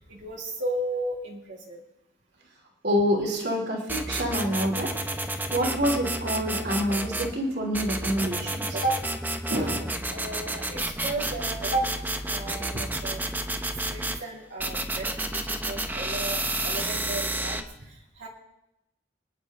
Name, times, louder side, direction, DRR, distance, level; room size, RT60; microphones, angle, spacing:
voice 1, 0.1-1.8 8.7-8.9 9.5-11.8 12.3-13.2 13.9-18.3, right 2 dB, 85° right, -3 dB, 2.7 m, -33 dB
voice 2, 2.8-4.9 5.5-8.8, equal, 60° right, 0 dB, 3.0 m, -27 dB
sound 1, 3.9-7.3 7.7-14.2 14.6-17.6, right 2 dB, 10° right, 0.8 m, -31 dB
26.5 x 10.0 x 3.7 m, 0.86 s
head